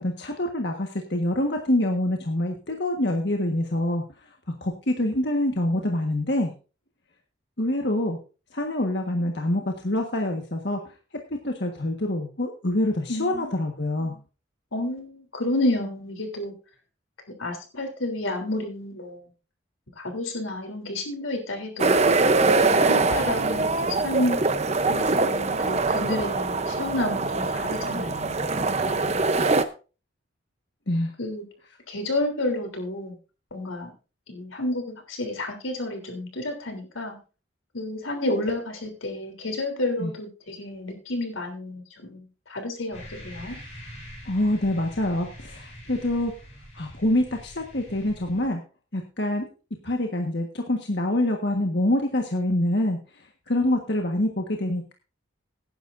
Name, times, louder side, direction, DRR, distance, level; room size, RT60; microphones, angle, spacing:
voice 1, 0.0-4.3 4.6-6.5 7.6-8.2 8.5-10.8 11.3-14.1 29.4-29.5 30.9-31.1 40.0-40.1 44.2-46.3 46.7-48.6 48.9-49.5 49.8-54.9, left 1 dB, 55° left, 2 dB, 1.5 m, -26 dB
voice 2, 13.1-13.5 14.1-14.2 14.7-16.5 17.4-19.2 20.0-24.4 24.9-28.4 28.8-29.2 31.2-31.4 31.9-33.1 33.5-33.9 34.3-37.2 37.7-43.6, left 1 dB, 90° left, 3 dB, 3.4 m, -30 dB
sound 1, 21.8-29.6, right 3 dB, 35° right, 0.7 m, -23 dB
sound 2, 42.9-48.5, equal, 35° left, 7.3 m, -44 dB
17.5 x 10.0 x 2.6 m, 0.34 s
head